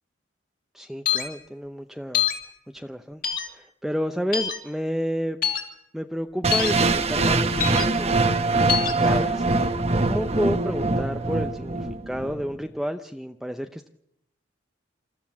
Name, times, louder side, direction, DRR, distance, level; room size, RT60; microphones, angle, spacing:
voice 1, 0.7-2.3 2.7-3.2 3.5-5.4 5.9-9.4 10.0-13.9, equal, ahead, 6 dB, 0.7 m, -30 dB
sound 1, 1.1-1.3 2.1-2.4 3.2-3.5 4.3-4.6 5.4-5.6 6.5-6.7 7.6-7.8 8.7-8.9, left 9 dB, 50° left, 3.1 m, -24 dB
sound 2, 6.4-12.4, right 3 dB, 35° right, 1.1 m, -23 dB
28.0 x 14.0 x 7.3 m, 0.83 s
head